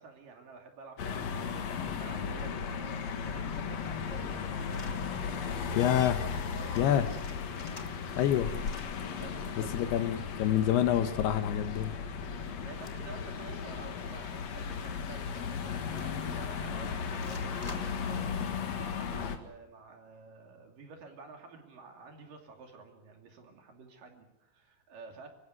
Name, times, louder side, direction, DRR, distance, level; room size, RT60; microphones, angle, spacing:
voice 1, 0.0-4.9 6.5-7.2 9.1-10.2 10.5-10.6 12.6-18.3 18.8-25.3, right 4 dB, 55° right, 3 dB, 4.1 m, -50 dB
sound 1, 1.0-19.4, left 6 dB, 55° left, 2.1 m, -36 dB
sound 2, 4.7-5.0 5.5-5.7 5.9-6.0 6.2-6.5 6.7-8.3 8.6-9.0 10.3-11.4 11.8-11.9 12.8-13.2 13.4-13.5 14.0-14.3 14.8-14.9 15.7-16.3 17.1-18.1, left 2 dB, 30° left, 0.7 m, -51 dB
voice 2, 5.8-6.2 6.8-7.1 8.2-8.5 9.7-11.9, left 10 dB, 75° left, 10 dB, 2.8 m, -27 dB
25.5 x 15.0 x 9.5 m, 0.92 s
omnidirectional pair, 4.9 m